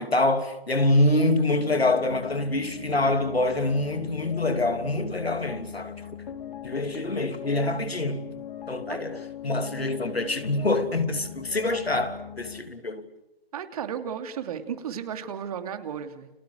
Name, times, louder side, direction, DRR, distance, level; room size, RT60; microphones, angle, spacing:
voice 1, 0.0-5.9 6.6-8.3 8.7-13.1, left 2 dB, 85° left, 3.1 m, -25 dB
sound 1, 1.5-12.6, left 9 dB, 50° left, 4.2 m, -40 dB
voice 2, 13.5-16.3, right 8 dB, 40° right, 2.8 m, -34 dB
30.0 x 29.0 x 6.5 m
figure-of-eight pair, 140°, 30 cm